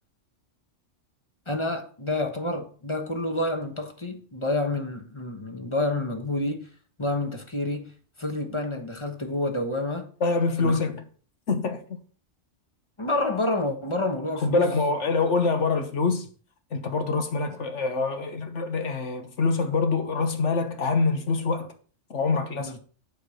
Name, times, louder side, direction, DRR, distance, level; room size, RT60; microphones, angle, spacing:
voice 1, 1.5-6.7 7.0-7.9 8.2-10.1 10.6-10.8 13.0-14.6 22.6-22.8, left 2 dB, 25° left, 1.2 m, -28 dB
voice 2, 10.2-11.0 11.5-12.0 14.4-16.3 16.7-21.7 22.1-22.7, left 4 dB, 80° left, 1.5 m, -25 dB
8.4 x 4.7 x 6.4 m
omnidirectional pair, 1.2 m